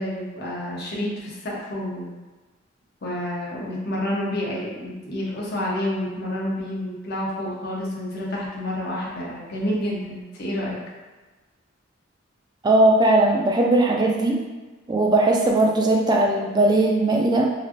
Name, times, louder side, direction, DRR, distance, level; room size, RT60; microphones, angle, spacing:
voice 1, 0.0-2.1 3.0-10.8, left 1 dB, 55° left, -5 dB, 0.7 m, -29 dB
voice 2, 12.6-14.4 14.9-17.5, right 2 dB, 20° right, 0 dB, 0.3 m, -19 dB
3.1 x 2.4 x 2.5 m, 1.2 s
head